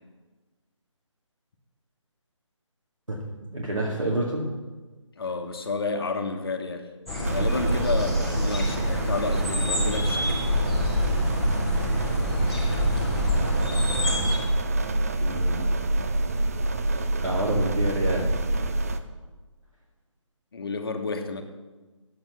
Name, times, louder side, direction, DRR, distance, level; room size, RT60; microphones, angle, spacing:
voice 1, 3.5-4.4 15.2-15.6 17.2-18.3, right 1 dB, 85° right, -4 dB, 2.2 m, -28 dB
voice 2, 5.2-6.9 7.2-10.4 20.5-21.4, left 4 dB, 50° left, 5 dB, 1.3 m, -30 dB
sound 1, 7.1-14.4, left 1 dB, ahead, 1.2 m, -28 dB
sound 2, 7.2-19.0, right 2 dB, 30° right, 0.5 m, -26 dB
9.1 x 7.9 x 7.0 m, 1.3 s
figure-of-eight pair, 150°, 16 cm